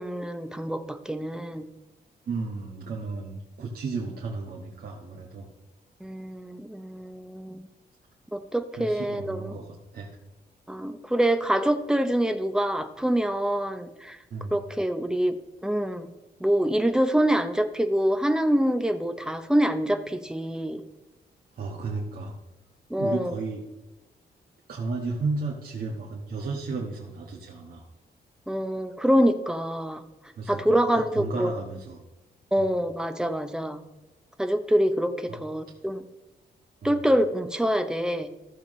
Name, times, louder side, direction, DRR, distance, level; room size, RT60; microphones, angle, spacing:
voice 1, 0.0-1.7 6.0-7.7 8.3-9.5 10.7-14.2 14.5-15.3 15.6-16.1 16.4-20.8 22.9-23.3 28.5-30.0 30.5-31.5 32.5-33.8 34.4-36.0 36.8-38.3, equal, 5° right, 8 dB, 0.6 m, -25 dB
voice 2, 2.2-5.5 8.8-10.1 14.3-14.6 21.6-22.3 23.0-23.6 24.7-27.8 30.4-32.0 32.6-32.7 35.3-35.4 36.8-37.0, right 3 dB, 60° right, -2 dB, 1.5 m, -33 dB
14.5 x 7.1 x 3.1 m, 1.1 s
wide cardioid pair, 155°, 17 cm